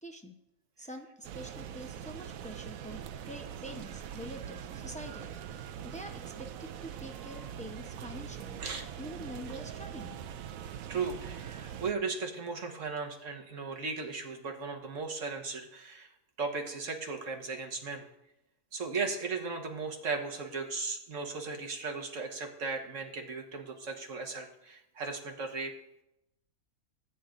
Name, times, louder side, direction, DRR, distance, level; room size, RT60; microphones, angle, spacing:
voice 1, 0.0-0.3 0.8-8.6 9.0-10.2, equal, 10° left, 2 dB, 0.4 m, -46 dB
sound 1, 1.2-11.9, right 9 dB, 70° right, 1.0 m, -43 dB
voice 2, 10.9-16.1 16.4-18.0 18.7-25.7, right 4 dB, 55° right, 2 dB, 1.6 m, -36 dB
16.5 x 8.8 x 2.6 m, 0.84 s
omnidirectional pair, 1.6 m